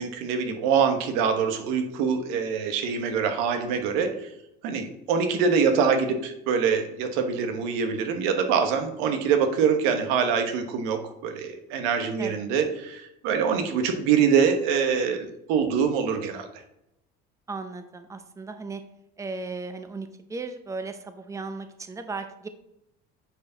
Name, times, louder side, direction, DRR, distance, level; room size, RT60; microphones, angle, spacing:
voice 1, 0.0-4.3 4.6-16.5, right 6 dB, 80° right, 6 dB, 1.3 m, -24 dB
voice 2, 17.5-18.8 19.2-22.5, right 3 dB, 15° right, 8 dB, 0.8 m, -36 dB
9.2 x 4.7 x 4.0 m, 0.82 s
supercardioid pair, 105°, 21 cm